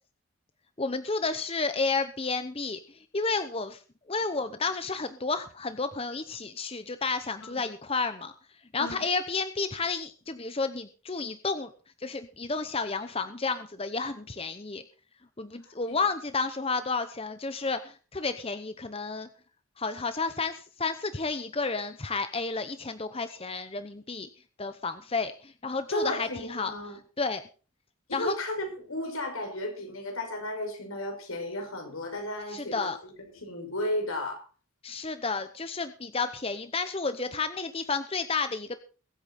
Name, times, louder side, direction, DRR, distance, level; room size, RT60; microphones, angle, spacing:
voice 1, 0.8-3.8 4.1-8.3 8.7-11.7 12.0-14.8 15.4-19.3 19.8-24.3 24.6-26.7 27.2-27.4 28.1-28.3 32.5-33.0 34.8-38.8, left 4 dB, 25° left, 0.8 m, -31 dB
voice 2, 25.9-27.0 28.1-34.4, left 1 dB, 75° left, 5.7 m, -34 dB
22.0 x 8.8 x 4.2 m
head